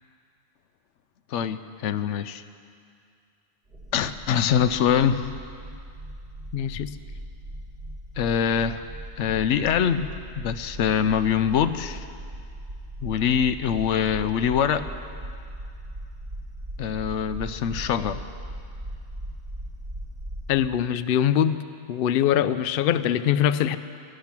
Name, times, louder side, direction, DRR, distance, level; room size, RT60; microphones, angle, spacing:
voice 1, 1.3-2.4 3.9-5.3 8.2-8.9 9.2-10.1 10.4-12.1 13.0-14.8 16.8-18.2, left 8 dB, 85° left, 12 dB, 0.9 m, -24 dB
sound 1, 3.7-20.5, right 1 dB, 55° right, 4.0 m, -39 dB
voice 2, 6.5-6.9 20.5-21.6 21.9-23.8, left 10 dB, 60° left, 13 dB, 0.6 m, -23 dB
17.5 x 12.0 x 6.0 m, 2.3 s
omnidirectional pair, 1.2 m